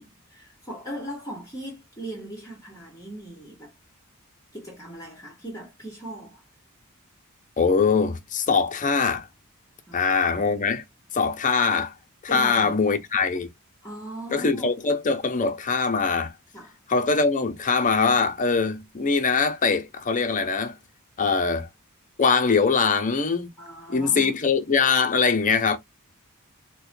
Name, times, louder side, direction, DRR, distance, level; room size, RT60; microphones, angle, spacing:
voice 1, 0.0-3.7 4.5-6.4 9.9-10.6 12.3-12.8 13.8-14.7 16.5-16.7 23.6-24.3, right 1 dB, 15° left, 1.1 m, -39 dB
voice 2, 7.6-9.3 9.9-10.8 11.1-11.9 12.2-13.5 14.3-16.3 16.9-20.8 21.2-21.7 22.2-23.5 23.9-25.8, left 5 dB, 35° left, 0.6 m, -22 dB
4.3 x 2.2 x 2.5 m
head